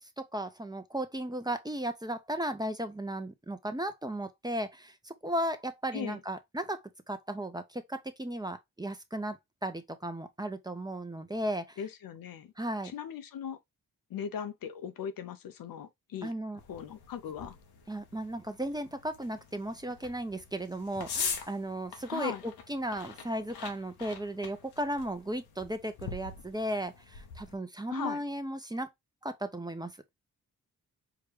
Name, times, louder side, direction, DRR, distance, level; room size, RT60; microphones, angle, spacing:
voice 1, 0.0-11.8 12.6-12.9 16.2-16.6 17.9-28.9 29.2-29.9, right 1 dB, 10° right, 0.7 m, -35 dB
voice 2, 11.8-12.5 12.8-13.6 14.1-16.3 16.7-17.6 22.1-22.4 27.9-28.2, left 8 dB, 65° left, 0.6 m, -39 dB
sound 1, 16.6-27.5, left 6 dB, 85° left, 0.9 m, -43 dB
4.8 x 2.2 x 3.3 m
supercardioid pair, 50°, 37 cm